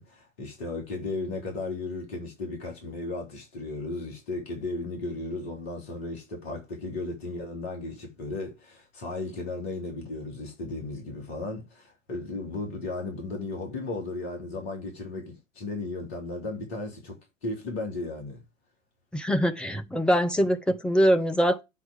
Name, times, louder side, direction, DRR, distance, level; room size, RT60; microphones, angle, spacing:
voice 1, 0.0-18.4, left 2 dB, 50° left, 3.8 m, -35 dB
voice 2, 19.1-21.6, equal, ahead, 0.7 m, -23 dB
8.4 x 4.6 x 7.3 m
figure-of-eight pair, 100°, 39 cm